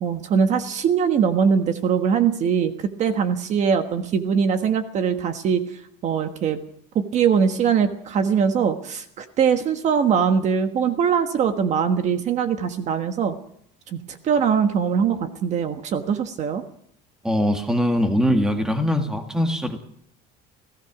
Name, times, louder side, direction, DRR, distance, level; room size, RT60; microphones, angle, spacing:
voice 1, 0.0-5.6 6.0-6.6 6.9-13.3 13.9-16.6, right 7 dB, 35° right, 8 dB, 1.4 m, -22 dB
voice 2, 17.2-19.8, equal, 5° right, 5 dB, 1.7 m, -22 dB
28.5 x 17.0 x 6.0 m, 0.71 s
cardioid pair, 180°, 19 cm